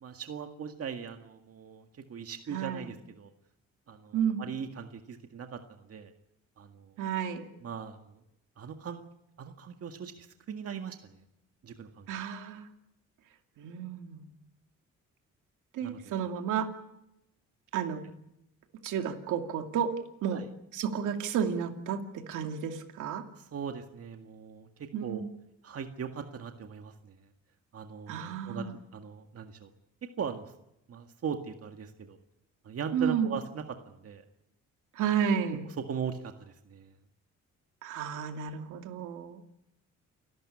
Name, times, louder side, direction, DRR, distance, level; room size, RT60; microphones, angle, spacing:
voice 1, 0.0-3.3 3.9-6.1 6.6-7.0 7.6-8.2 8.6-9.0 9.4-11.2 11.6-12.1 15.8-16.2 20.3-20.4 23.4-25.2 25.6-27.1 27.7-28.7 28.9-29.7 30.0-30.5 30.9-32.2 32.6-34.2 35.9-36.9, right 7 dB, 50° right, 5 dB, 1.9 m, -40 dB
voice 2, 2.5-2.9 4.1-4.4 7.0-7.5 12.1-12.7 13.6-14.3 15.7-16.7 17.7-18.0 18.8-19.9 20.2-20.5 20.7-23.2 24.9-25.3 28.1-28.7 32.9-33.3 34.9-35.7 37.8-39.4, right 7 dB, 85° right, 5 dB, 2.6 m, -32 dB
29.0 x 13.0 x 9.9 m, 0.84 s
cardioid pair, 90°, 30 cm